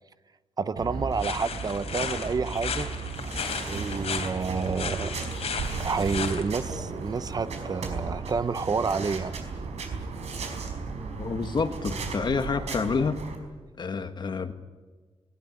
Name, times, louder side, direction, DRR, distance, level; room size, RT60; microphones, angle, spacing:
voice 1, 0.6-2.9 3.7-5.1 5.8-9.3, right 5 dB, 35° right, 13 dB, 0.7 m, -29 dB
sound 1, 0.8-13.4, right 4 dB, 85° right, 4.8 m, -35 dB
sound 2, 1.2-6.4, left 6 dB, 75° left, 3.4 m, -35 dB
voice 2, 11.2-13.2 13.8-14.5, left 4 dB, 45° left, 8 dB, 1.5 m, -28 dB
20.0 x 20.0 x 9.8 m, 1.4 s
wide cardioid pair, 170°, 11 cm